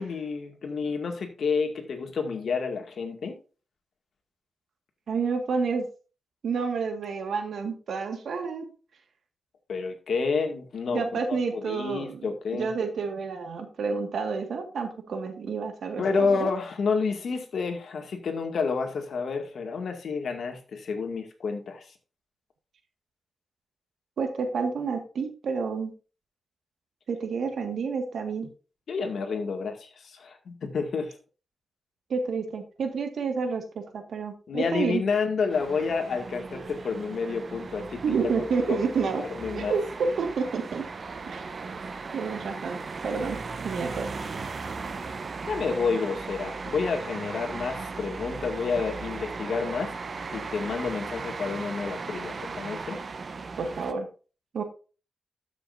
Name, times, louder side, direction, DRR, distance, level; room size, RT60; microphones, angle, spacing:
voice 1, 0.0-3.3 9.7-12.7 16.0-21.9 28.9-31.2 34.5-38.3 38.7-38.8 39.3-39.8 45.5-49.9 50.3-53.0, left 5 dB, 70° left, 4 dB, 2.1 m, -29 dB
voice 2, 5.1-5.9 6.4-8.7 10.9-12.2 12.5-16.5 24.2-25.9 27.1-28.5 32.1-35.0 38.0-39.2 39.6-40.9 41.3-41.4 42.1-43.4 43.6-44.1 53.6-54.1 54.5-54.6, right 5 dB, 80° right, 5 dB, 1.8 m, -29 dB
sound 1, 35.5-53.9, right 4 dB, 45° right, 0.9 m, -37 dB
13.0 x 6.4 x 2.7 m, 0.35 s
wide cardioid pair, 100°, 0 cm